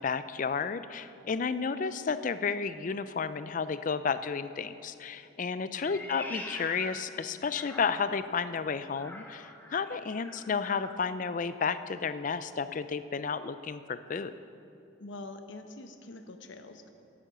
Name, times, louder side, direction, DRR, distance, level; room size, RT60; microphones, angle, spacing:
voice 1, 0.0-14.3, left 5 dB, 40° left, 13 dB, 0.4 m, -32 dB
voice 2, 5.5-5.9 15.0-16.9, left 2 dB, 60° left, 7 dB, 0.8 m, -45 dB
Meow, 5.8-8.3 8.9-11.0, left 1 dB, 10° left, 0.9 m, -44 dB
11.0 x 8.6 x 6.7 m, 2.7 s
head